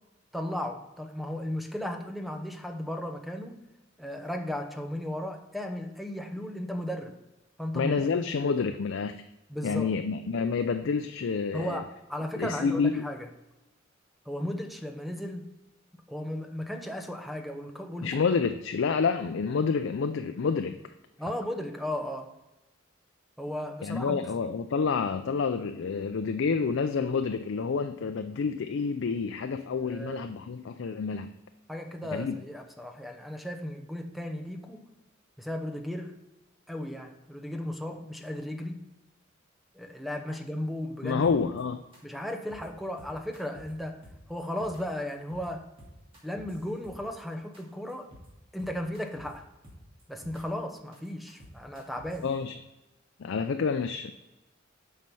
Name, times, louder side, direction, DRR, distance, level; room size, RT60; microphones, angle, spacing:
voice 1, 0.3-3.6 4.0-7.2 7.6-8.1 9.5-9.9 11.5-13.3 14.3-15.5 15.9-18.2 21.2-22.3 23.4-24.2 29.8-30.4 31.7-34.9 35.4-36.2 36.7-38.8 39.7-41.3 42.0-44.0 44.3-45.7 46.2-48.1 48.5-49.5 50.1-52.3, left 1 dB, ahead, 5 dB, 0.7 m, -35 dB
voice 2, 7.7-9.2 9.6-11.8 12.4-13.0 18.0-20.8 23.8-31.3 32.1-32.4 41.0-41.8 52.2-52.6 53.2-54.1, left 5 dB, 70° left, 7 dB, 0.4 m, -28 dB
sound 1, 41.2-41.6 41.9-42.0 42.3-42.7 43.0-43.7 44.0-44.8 45.1-45.5 45.8-47.2 47.5-47.6 47.9-48.3 48.6-49.3 49.6-50.4 50.7-52.2, equal, 30° right, 2.3 m, -50 dB
7.6 x 5.6 x 5.4 m, 1.0 s
head